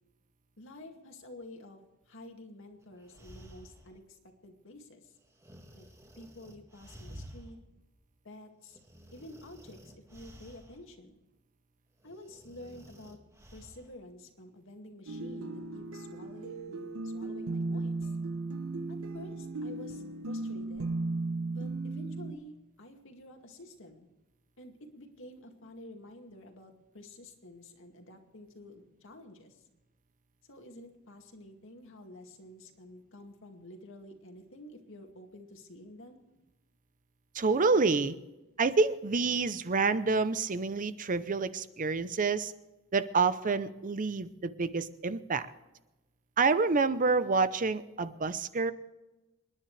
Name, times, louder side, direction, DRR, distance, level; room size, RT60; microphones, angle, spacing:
voice 1, 0.6-1.8 2.1-5.1 5.7-5.9 6.2-7.6 8.2-8.8 9.1-11.2 12.0-13.2 13.5-18.1 18.9-20.9 21.5-24.1 24.6-29.6 30.5-36.2, left 1 dB, 65° left, 4 dB, 2.2 m, -50 dB
sound 1, 2.8-4.0 5.4-7.6 8.0-8.1 8.7-10.9 12.0-13.9, equal, 15° right, 1.9 m, -52 dB
sound 2, 15.1-22.3, right 2 dB, 80° right, 1.2 m, -36 dB
voice 2, 37.3-38.1 38.6-42.5 42.9-45.5 46.4-48.7, right 4 dB, 40° right, 13 dB, 0.7 m, -28 dB
27.5 x 10.5 x 3.3 m, 1.1 s
head